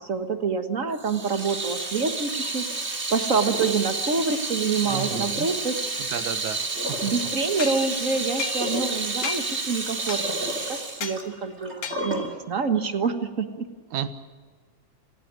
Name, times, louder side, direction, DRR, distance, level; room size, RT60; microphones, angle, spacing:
voice 1, 0.0-6.0 7.0-13.7, right 5 dB, 45° right, 8 dB, 1.1 m, -27 dB
Water tap faucet / Sink (filling or washing), 1.0-12.3, right 2 dB, 20° right, 2.8 m, -30 dB
voice 2, 4.8-5.5 6.0-6.6 6.9-7.0 13.9-14.1, right 9 dB, 75° right, 10 dB, 2.8 m, -31 dB
sound 1, 7.6-8.9 9.2-9.6 10.1-10.5 11.0-11.2 11.8-12.3, left 6 dB, 55° left, 2.1 m, -35 dB
27.5 x 16.0 x 9.6 m, 1.5 s
omnidirectional pair, 3.6 m